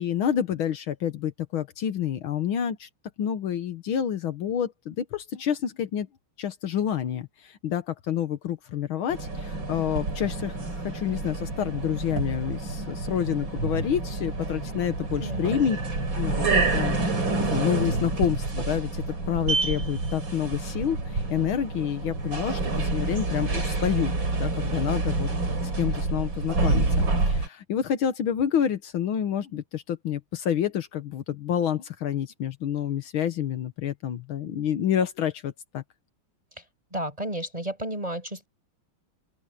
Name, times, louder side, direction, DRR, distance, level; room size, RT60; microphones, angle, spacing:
voice 1, 0.0-2.9 3.2-6.1 6.4-10.6 10.8-15.8 16.1-17.0 17.5-25.3 25.8-35.8, left 9 dB, 75° left, 1.9 m, -28 dB
sound 1, 9.1-27.5, right 3 dB, 60° right, 5.3 m, -28 dB
voice 2, 36.9-38.5, right 1 dB, 15° right, 6.4 m, -32 dB
open air
omnidirectional pair, 2.4 m